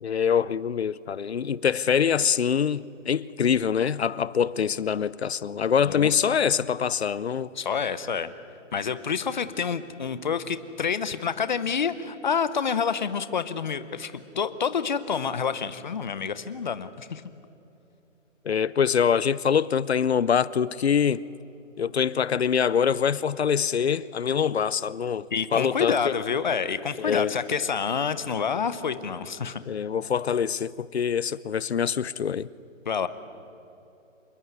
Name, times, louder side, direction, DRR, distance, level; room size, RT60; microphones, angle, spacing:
voice 1, 0.0-7.5 18.4-21.2 21.8-25.3 25.5-26.1 27.0-27.3 29.7-32.5, left 7 dB, 55° left, 0.7 m, -24 dB
voice 2, 7.6-8.3 8.7-17.2 25.3-29.6 32.8-33.1, left 6 dB, 35° left, 1.0 m, -28 dB
27.5 x 20.5 x 8.2 m
hypercardioid pair, 175°, 38 cm